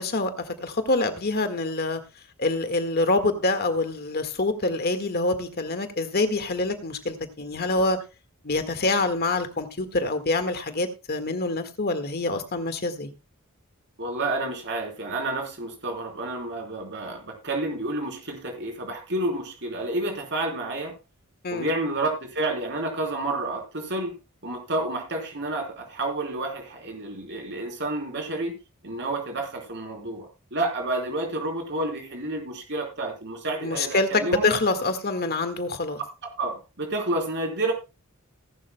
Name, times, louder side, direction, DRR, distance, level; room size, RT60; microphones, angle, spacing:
voice 1, 0.0-2.0 2.4-8.0 8.4-13.1 21.4-21.7 33.6-36.0, left 2 dB, 45° left, 1.7 m, -26 dB
voice 2, 14.0-20.9 21.5-24.1 24.4-28.6 28.8-34.5 36.4-37.7, right 2 dB, 55° right, 3.7 m, -30 dB
18.5 x 11.5 x 2.2 m
head